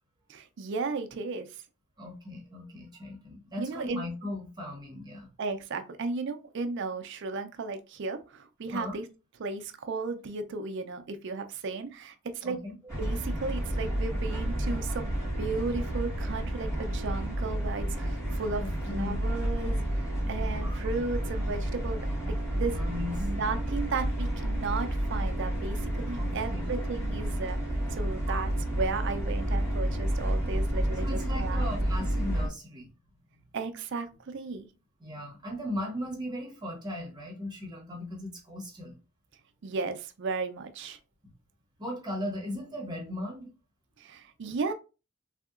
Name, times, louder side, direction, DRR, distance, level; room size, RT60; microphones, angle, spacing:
voice 1, 0.3-1.5 3.6-4.0 5.4-9.0 9.4-12.6 13.0-18.6 18.9-22.0 22.5-22.8 23.2-27.6 27.9-31.7 33.5-34.7 39.6-41.0 44.0-44.7, right 4 dB, 60° right, 8 dB, 0.4 m, -35 dB
voice 2, 2.0-5.3 8.7-9.0 12.4-12.9 18.6-19.2 20.5-20.8 22.7-23.3 26.1-26.7 28.1-28.4 31.0-32.9 35.0-39.0 41.8-43.5, left 1 dB, 20° right, 0 dB, 0.9 m, -38 dB
sound 1, 12.9-32.5, right 1 dB, 15° left, 1.5 m, -30 dB
3.4 x 2.8 x 2.4 m, 0.31 s
head